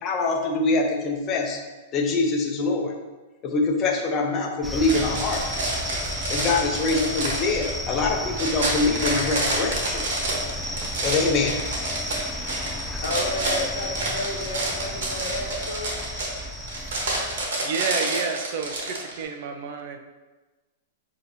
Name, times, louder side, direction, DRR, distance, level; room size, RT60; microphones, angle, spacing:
voice 1, 0.0-1.6 1.9-2.9 3.4-5.4 6.3-10.1 11.0-11.6, left 3 dB, 30° left, 2 dB, 0.7 m, -24 dB
sound 1, 4.6-17.5, left 1 dB, ahead, 0.3 m, -33 dB
sound 2, 4.8-19.2, right 2 dB, 75° right, 1.2 m, -29 dB
voice 2, 13.0-16.0, left 1 dB, 70° left, -1 dB, 1.0 m, -32 dB
voice 3, 17.5-20.0, right 5 dB, 55° right, 5 dB, 0.5 m, -30 dB
6.3 x 2.8 x 2.7 m, 1.2 s
hypercardioid pair, 135°, 0 cm